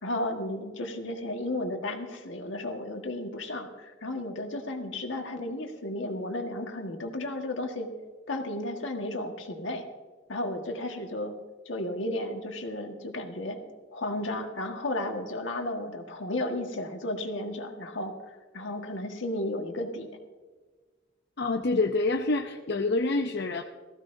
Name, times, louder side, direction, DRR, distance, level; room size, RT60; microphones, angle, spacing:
voice 1, 0.0-7.9 8.3-9.9 10.3-11.3 11.6-13.6 13.9-18.1 18.5-20.1, left 1 dB, 80° left, 3 dB, 1.6 m, -33 dB
voice 2, 21.4-23.6, left 3 dB, 60° left, 4 dB, 0.6 m, -27 dB
18.5 x 15.0 x 2.7 m, 1.4 s
head